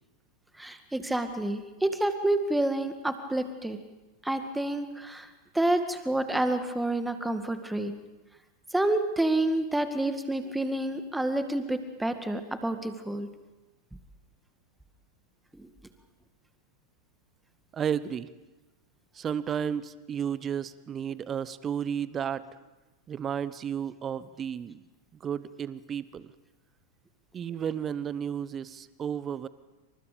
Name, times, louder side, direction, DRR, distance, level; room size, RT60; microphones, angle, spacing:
voice 1, 0.6-3.8 4.2-5.3 5.5-7.9 8.7-13.3 15.5-15.7, right 1 dB, 5° right, 8 dB, 2.0 m, -28 dB
voice 2, 17.7-18.3 19.1-22.6 23.1-24.8 25.2-26.3 27.3-29.5, right 8 dB, 25° right, 17 dB, 1.0 m, -33 dB
27.5 x 26.5 x 5.2 m, 1.1 s
figure-of-eight pair, 90°, 0 cm